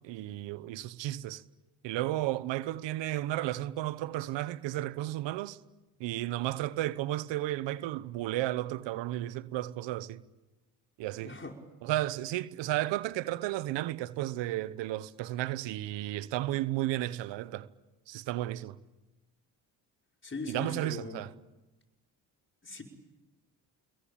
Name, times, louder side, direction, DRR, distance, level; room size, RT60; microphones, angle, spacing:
voice 1, 0.0-1.4 1.8-5.6 6.0-10.2 11.0-11.3 11.8-17.7 18.1-18.8 20.5-21.3, right 15 dB, 80° right, 1.0 m, -33 dB
voice 2, 11.2-11.5 20.2-21.2 22.6-22.8, left 3 dB, 25° left, 5.5 m, -39 dB
26.5 x 22.0 x 8.7 m
supercardioid pair, 65°, 43 cm